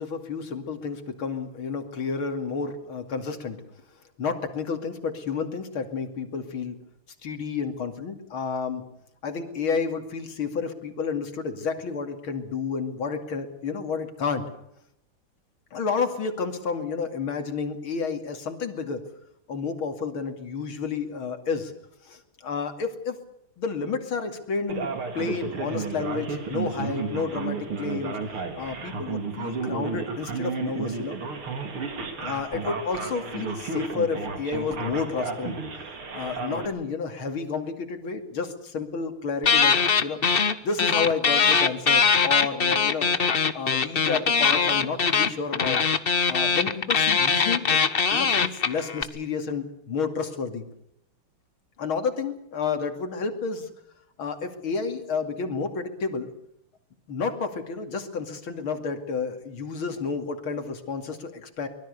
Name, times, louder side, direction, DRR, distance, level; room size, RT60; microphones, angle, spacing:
voice 1, 0.0-3.6 4.2-6.8 7.2-8.9 9.2-14.5 15.7-19.0 19.5-21.7 22.0-23.2 23.6-28.2 28.6-31.2 32.2-35.6 36.1-39.8 40.0-40.2 40.6-43.1 43.5-45.8 46.3-47.8 48.1-50.6 51.8-53.7 54.2-56.3 57.1-61.7, left 5 dB, 75° left, 7 dB, 3.3 m, -30 dB
Male speech man speaking, 24.7-36.7, right 4 dB, 85° right, 3.7 m, -32 dB
sound 1, 39.4-40.5 40.8-49.0, left 5 dB, 40° left, 0.9 m, -21 dB
24.5 x 21.0 x 6.7 m, 0.76 s
omnidirectional pair, 2.3 m